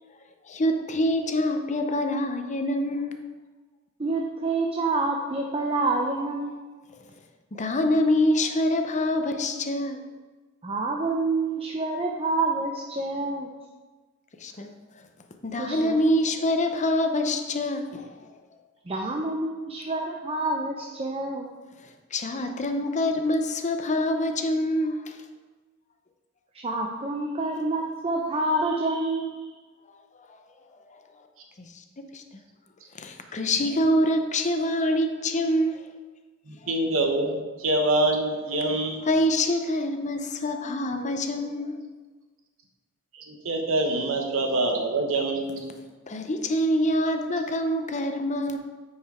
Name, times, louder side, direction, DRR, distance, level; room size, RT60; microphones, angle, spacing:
voice 1, 0.5-3.2 7.5-10.0 14.4-14.7 15.4-18.2 22.1-25.2 31.6-31.7 32.0-32.2 33.0-35.8 39.1-41.8 46.1-48.6, left 1 dB, 35° left, 6 dB, 0.7 m, -25 dB
voice 2, 4.0-6.7 10.6-13.5 15.6-16.0 18.9-21.5 26.6-29.5, right 2 dB, 30° right, 0 dB, 0.6 m, -27 dB
voice 3, 36.5-39.0 43.1-45.7, right 2 dB, 70° right, 2 dB, 1.3 m, -25 dB
9.2 x 4.9 x 4.4 m, 1.3 s
head